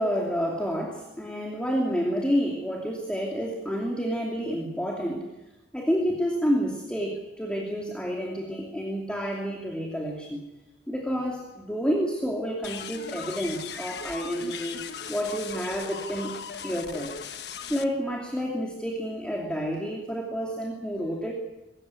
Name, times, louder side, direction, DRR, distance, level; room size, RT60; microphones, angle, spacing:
voice 1, 0.0-5.3 5.7-10.4 10.9-14.8 15.1-16.3 16.6-17.1 17.7-21.3, equal, 5° left, -1 dB, 2.7 m, -29 dB
sound 1, 12.6-17.8, left 6 dB, 70° left, 1.3 m, -38 dB
24.5 x 14.5 x 9.7 m, 1.0 s
head